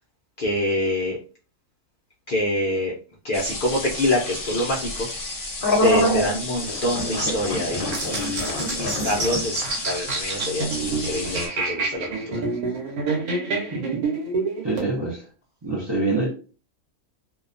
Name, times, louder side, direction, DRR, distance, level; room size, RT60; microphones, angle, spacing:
voice 1, 0.4-1.2 2.3-2.9 3.2-4.9 5.8-8.5 8.7-11.4 11.7-12.1, left 1 dB, 70° left, 0.4 m, -25 dB
sound 1, 3.3-11.5, left 1 dB, 45° left, 0.8 m, -27 dB
sound 2, 7.9-14.9, right 3 dB, 90° right, 1.3 m, -28 dB
voice 2, 13.7-14.0 14.6-15.3 15.6-16.3, right 2 dB, 35° right, 0.4 m, -25 dB
2.7 x 2.2 x 2.5 m
omnidirectional pair, 1.5 m